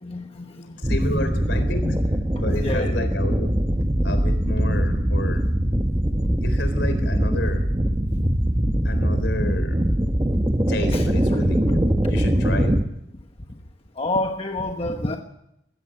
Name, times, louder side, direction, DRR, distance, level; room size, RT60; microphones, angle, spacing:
voice 1, 0.0-0.8 1.1-1.3 1.8-2.0 2.5-2.9 10.9-11.1 14.0-15.2, left 2 dB, 30° left, 4 dB, 1.2 m, -28 dB
voice 2, 0.8-2.1 2.4-3.5 4.0-5.4 6.4-7.6 8.8-9.9 10.7-12.7, left 1 dB, 70° left, 9 dB, 4.0 m, -31 dB
sound 1, 0.8-12.8, equal, 20° right, 1.2 m, -22 dB
22.0 x 15.5 x 9.0 m, 0.82 s
head